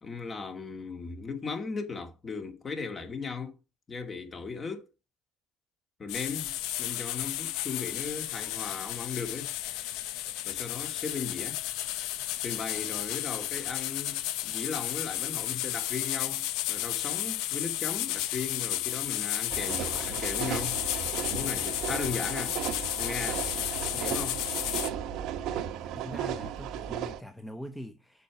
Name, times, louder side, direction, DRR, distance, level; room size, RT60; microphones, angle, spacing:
voice 1, 0.0-3.5 3.9-4.9 6.0-9.5 10.5-11.6 12.4-22.6 23.0-23.5 23.9-24.4, left 5 dB, 30° left, 2.1 m, -37 dB
sound 1, 6.1-24.9, left 14 dB, 75° left, 0.6 m, -33 dB
sound 2, 19.5-27.2, right 9 dB, 65° right, 1.0 m, -35 dB
voice 2, 25.4-28.2, equal, 5° left, 0.9 m, -43 dB
6.8 x 4.9 x 6.0 m
hypercardioid pair, 75°, 0 cm